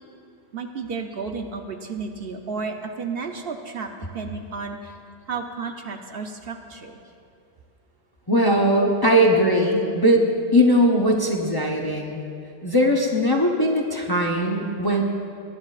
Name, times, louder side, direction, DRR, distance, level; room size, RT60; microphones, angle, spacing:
voice 1, 0.5-5.0 5.3-7.0, right 4 dB, 60° right, 4 dB, 0.9 m, -32 dB
voice 2, 8.3-12.2 12.6-15.0, equal, 25° left, 0 dB, 0.7 m, -20 dB
21.0 x 10.5 x 2.4 m, 2.5 s
omnidirectional pair, 1.2 m